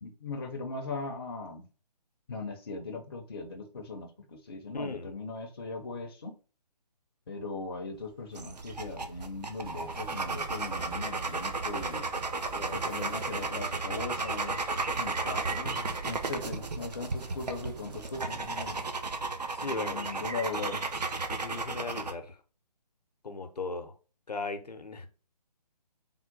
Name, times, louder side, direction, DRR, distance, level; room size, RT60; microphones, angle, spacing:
voice 1, 0.0-1.7 2.3-6.4 7.3-12.1 12.7-18.8 19.7-20.8, left 3 dB, 35° left, 2 dB, 0.6 m, -39 dB
voice 2, 4.7-5.1 12.4-13.2 19.5-20.1 21.3-22.4 23.2-24.0 24.3-25.1, left 3 dB, 70° left, 7 dB, 0.7 m, -38 dB
sound 1, 7.9-19.3, right 2 dB, 50° right, 1.0 m, -51 dB
sound 2, 8.3-22.1, right 3 dB, 75° right, 0.6 m, -34 dB
sound 3, 9.6-18.8, right 4 dB, 35° right, 0.6 m, -49 dB
3.7 x 2.2 x 3.7 m, 0.36 s
figure-of-eight pair, 145°, 21 cm